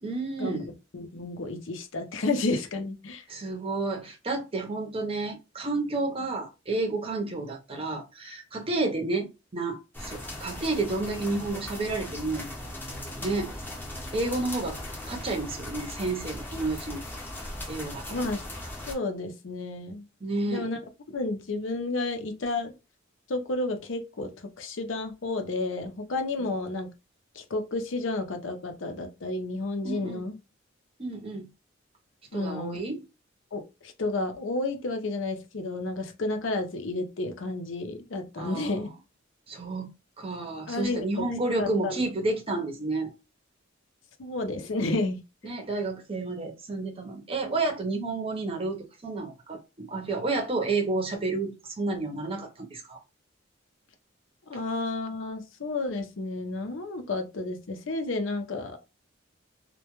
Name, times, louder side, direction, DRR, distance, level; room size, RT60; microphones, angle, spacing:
voice 1, 0.0-0.7 3.3-12.5 13.2-13.5 14.1-14.8 15.1-17.0 17.7-18.2 20.2-20.7 26.4-26.5 29.8-30.2 31.0-31.5 32.3-33.0 38.4-38.8 39.5-43.1 45.4-53.0, right 3 dB, 30° right, 0.6 m, -31 dB
voice 2, 0.9-3.2 18.1-18.5 18.9-20.0 20.5-20.8 21.1-22.7 23.3-24.3 24.6-26.9 27.4-30.4 32.3-32.8 33.5-38.9 40.7-41.3 41.6-42.0 44.2-45.2 54.5-58.8, left 2 dB, 70° left, 0.6 m, -31 dB
sound 1, 9.9-19.0, left 1 dB, 10° left, 0.7 m, -38 dB
2.2 x 2.1 x 2.9 m
head